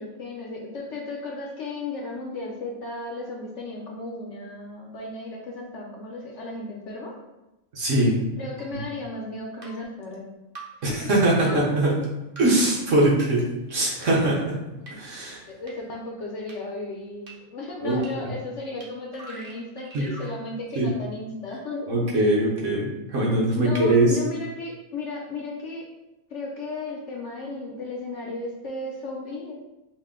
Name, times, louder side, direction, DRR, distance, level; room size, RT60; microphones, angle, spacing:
voice 1, 0.0-7.1 8.4-10.3 15.5-21.9 23.6-25.8 26.3-29.5, left 2 dB, 65° left, -1 dB, 0.9 m, -35 dB
voice 2, 7.7-8.1 10.8-11.9 12.4-13.4 13.7-14.6 14.9-15.4 17.8-18.0 19.9-20.1 20.8-20.9 21.9-24.2, right 1 dB, 60° right, -4 dB, 1.2 m, -22 dB
sound 1, 8.6-8.7 9.6-9.7 10.6-10.7 11.5-11.6 12.4-12.5 13.2-13.3 14.0-14.1 14.9-15.0 15.7-15.8 16.5-16.6 17.3-17.4 18.0-18.1 18.8-18.9 19.1-20.3, right 2 dB, 40° right, 0.8 m, -41 dB
4.6 x 2.1 x 3.6 m, 0.97 s
omnidirectional pair, 1.5 m